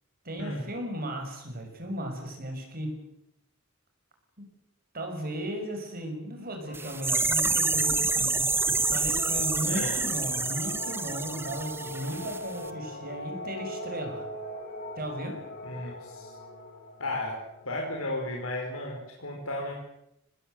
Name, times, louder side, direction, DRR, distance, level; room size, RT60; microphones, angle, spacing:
voice 1, 0.2-3.0 4.4-4.5 4.9-8.5 8.9-14.2 15.0-15.4, right 1 dB, 45° right, 3 dB, 6.3 m, -36 dB
sound 1, 6.6-18.5, left 1 dB, 50° left, 5.3 m, -41 dB
sound 2, 6.7-12.4 12.6-12.7, right 3 dB, 10° right, 1.2 m, -28 dB
voice 2, 9.7-10.0 15.6-16.3 17.0-17.4 17.6-19.7, left 1 dB, 90° left, -1 dB, 5.1 m, -34 dB
25.5 x 20.0 x 7.9 m, 0.82 s
head